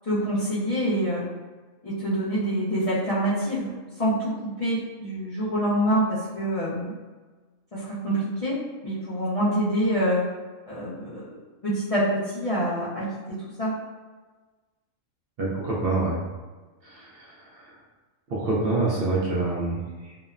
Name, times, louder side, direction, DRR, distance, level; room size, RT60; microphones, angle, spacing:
voice 1, 0.1-1.3 1.8-3.7 4.0-4.3 4.6-6.9 7.7-10.2 10.7-11.2 11.6-13.8, equal, 55° left, -11 dB, 0.4 m, -26 dB
voice 2, 15.4-16.3 16.8-17.8 18.3-20.2, right 2 dB, 60° right, -6 dB, 0.7 m, -27 dB
2.8 x 2.0 x 2.3 m, 1.3 s
omnidirectional pair, 1.4 m